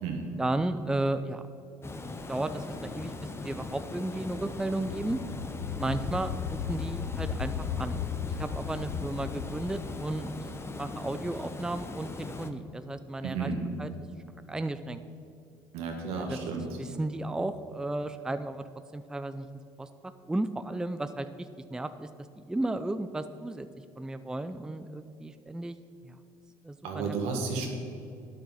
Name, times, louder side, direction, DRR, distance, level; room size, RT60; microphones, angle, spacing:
voice 1, 0.4-1.4 2.3-3.1 3.4-5.2 5.8-8.0 8.4-10.5 10.7-13.5 13.8-13.9 14.5-15.0 16.1-16.4 16.8-18.6 18.9-19.5 19.8-19.9 20.3-21.3 21.7-22.1 22.4-23.7 24.0-25.8 26.0-26.2 26.6-27.2, right 2 dB, 5° right, 10 dB, 0.4 m, -33 dB
Water, 1.8-12.5, left 2 dB, 25° left, 0.8 m, -40 dB
sound 1, 4.2-11.0, left 8 dB, 75° left, 0.4 m, -37 dB
voice 2, 13.2-13.6 15.7-16.8 26.8-27.7, right 4 dB, 75° right, 2 dB, 1.6 m, -32 dB
9.2 x 6.4 x 5.5 m, 2.7 s
supercardioid pair, 70°, 10 cm